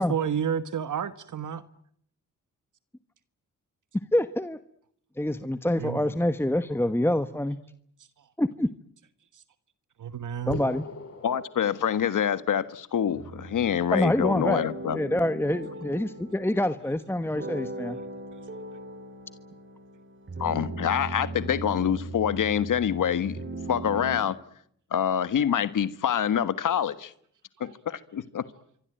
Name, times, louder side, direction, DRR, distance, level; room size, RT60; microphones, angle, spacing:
voice 1, 0.0-1.6 5.8-6.0 9.3-9.4 10.0-10.6, right 8 dB, 70° right, 1.4 m, -30 dB
voice 2, 4.1-4.6 5.2-7.6 8.4-8.7 10.5-10.8 13.9-14.6 14.9-18.0, left 1 dB, 5° left, 1.2 m, -26 dB
sound 1, 10.5-12.4, left 5 dB, 50° left, 4.3 m, -40 dB
voice 3, 11.2-15.0 20.4-23.4 23.7-24.4 24.9-27.1 27.6-28.4, left 9 dB, 75° left, 1.5 m, -26 dB
sound 2, 13.1-24.2, right 2 dB, 40° right, 6.5 m, -39 dB
26.5 x 24.0 x 9.1 m
cardioid pair, 80°, 32 cm